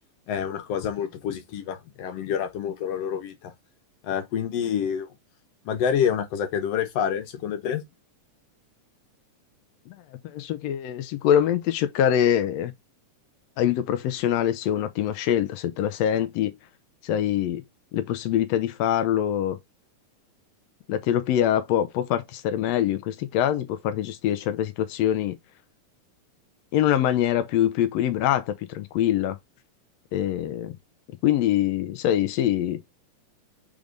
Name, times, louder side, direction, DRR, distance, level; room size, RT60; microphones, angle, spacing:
voice 1, 0.3-3.5 4.0-5.1 5.7-7.8, left 8 dB, 60° left, 2.0 m, -27 dB
voice 2, 10.2-12.7 13.6-16.5 17.0-17.6 17.9-19.6 20.9-25.4 26.7-29.4 30.1-30.8 31.2-32.8, left 11 dB, 80° left, 1.5 m, -24 dB
5.0 x 3.6 x 5.2 m
omnidirectional pair, 3.6 m